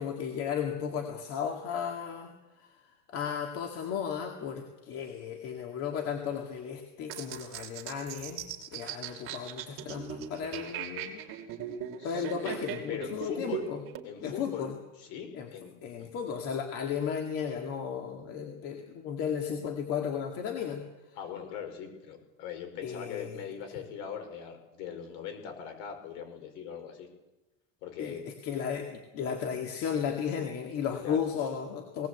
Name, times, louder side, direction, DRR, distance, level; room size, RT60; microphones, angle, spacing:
voice 1, 0.0-2.3 2.6-2.7 3.1-8.4 8.7-11.2 12.0-13.8 14.2-14.8 15.3-15.5 15.8-20.8 22.8-23.4 28.0-28.1 28.4-32.1, left 7 dB, 40° left, 3 dB, 2.2 m, -34 dB
sound 1, 7.1-14.0, right 9 dB, 35° right, 2.7 m, -39 dB
voice 2, 12.0-12.6 12.9-13.7 14.0-14.7 15.0-16.1 21.1-27.1 27.8-28.2 31.0-31.2, left 8 dB, 55° left, 5 dB, 5.2 m, -41 dB
19.5 x 18.0 x 8.2 m, 1.0 s
cardioid pair, 165°, 36 cm